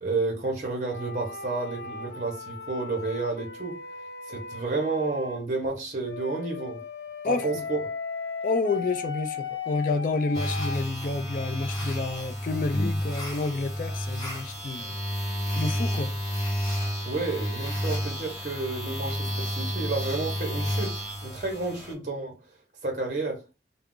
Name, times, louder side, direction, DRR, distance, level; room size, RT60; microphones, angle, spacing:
voice 1, 0.0-3.8 4.3-6.8 7.2-7.8 17.0-22.3 22.8-23.4, right 3 dB, 45° right, 0.6 m, -30 dB
sound 1, 0.8-5.4 6.0-10.8, left 4 dB, 85° left, 0.7 m, -37 dB
voice 2, 7.2-7.6 8.4-16.1, left 3 dB, 50° left, 0.3 m, -30 dB
sound 2, 10.3-21.9, equal, 25° left, 0.7 m, -31 dB
2.3 x 2.0 x 3.6 m
head